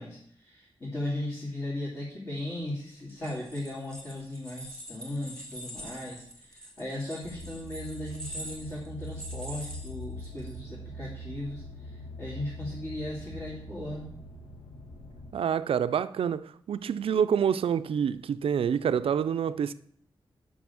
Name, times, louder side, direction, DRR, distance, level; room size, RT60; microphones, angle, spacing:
voice 1, 0.0-14.1, left 1 dB, 35° left, 2.7 m, -37 dB
sound 1, 3.1-10.5, right 1 dB, 10° left, 2.2 m, -45 dB
sound 2, 7.2-15.3, equal, 70° left, 1.3 m, -43 dB
voice 2, 15.3-19.7, right 8 dB, 80° right, 0.4 m, -27 dB
6.1 x 6.1 x 7.1 m
wide cardioid pair, 130°, 9 cm